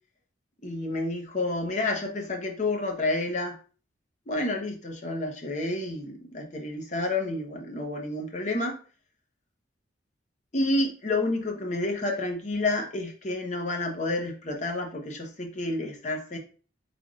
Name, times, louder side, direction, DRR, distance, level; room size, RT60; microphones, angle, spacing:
voice 1, 0.6-3.6 4.3-8.8 10.5-16.4, left 2 dB, 40° left, 2 dB, 0.8 m, -29 dB
4.9 x 3.5 x 2.4 m, 0.39 s
head